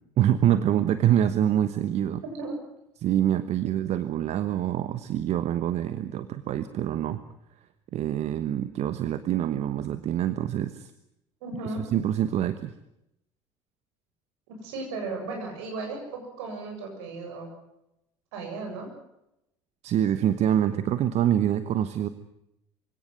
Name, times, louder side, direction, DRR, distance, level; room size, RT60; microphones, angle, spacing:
voice 1, 0.2-2.2 3.0-7.2 7.9-10.9 11.6-12.7 19.8-22.1, right 11 dB, 50° right, 12 dB, 1.1 m, -25 dB
voice 2, 11.4-11.8 14.5-17.5 18.3-18.9, right 3 dB, 70° right, 2 dB, 7.4 m, -35 dB
23.5 x 17.5 x 9.4 m, 0.84 s
figure-of-eight pair, 60°, 15 cm